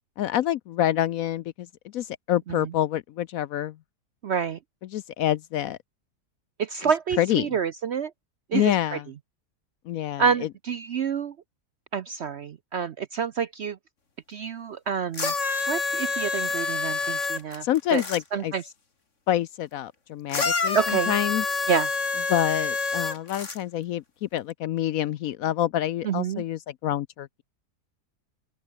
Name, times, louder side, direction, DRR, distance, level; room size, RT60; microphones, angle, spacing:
voice 1, 0.2-1.7 1.9-3.8 4.8-5.8 7.2-7.6 8.5-9.1 9.9-10.5 17.6-18.5 19.3-21.4 22.3-27.3, left 12 dB, 70° left, 0.9 m, -27 dB
voice 2, 4.2-4.6 6.6-8.1 8.5-9.0 10.2-11.3 11.9-13.8 14.3-15.3 15.7-17.7 17.9-18.0 18.3-18.6 20.7-21.1 21.7-21.9 26.0-26.4, right 7 dB, 60° right, 0.7 m, -27 dB
sound 1, 15.1-18.2 20.3-23.6 24.5-24.6, left 4 dB, 45° left, 2.7 m, -27 dB
open air
omnidirectional pair, 1.8 m